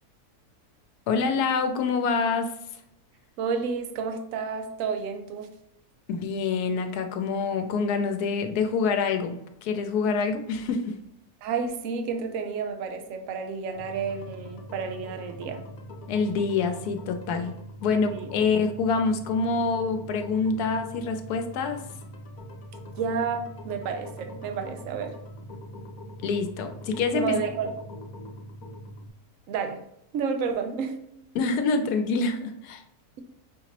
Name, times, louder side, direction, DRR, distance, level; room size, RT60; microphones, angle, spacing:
voice 1, 1.1-2.6 6.1-10.9 16.1-17.5 17.8-21.8 26.2-27.4 31.3-32.8, left 4 dB, 90° left, 6 dB, 1.1 m, -26 dB
voice 2, 3.4-5.5 11.4-15.6 18.1-18.3 23.0-25.1 27.1-27.7 29.5-29.8 30.1-31.3, right 5 dB, 65° right, 5 dB, 0.9 m, -30 dB
sound 1, 13.7-29.1, equal, 70° left, 1.2 m, -42 dB
5.7 x 2.9 x 2.9 m, 0.77 s
omnidirectional pair, 1.6 m